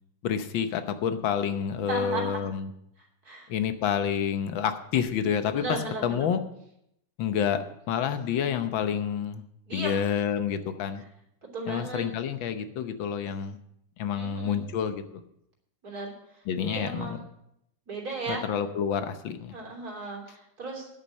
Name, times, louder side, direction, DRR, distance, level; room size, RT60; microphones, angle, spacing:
voice 1, 0.2-2.7 3.5-5.8 6.0-6.4 7.2-9.4 9.7-11.0 11.7-13.6 14.0-15.0 16.5-17.2 18.3-19.5, left 8 dB, 85° left, 9 dB, 1.7 m, -28 dB
voice 2, 1.8-2.4 3.3-3.5 5.5-6.3 9.7-10.2 11.5-12.1 14.2-14.6 15.8-17.2 17.9-18.4 19.5-20.9, right 2 dB, 50° right, -1 dB, 3.6 m, -36 dB
9.6 x 8.6 x 7.6 m, 0.77 s
omnidirectional pair, 2.1 m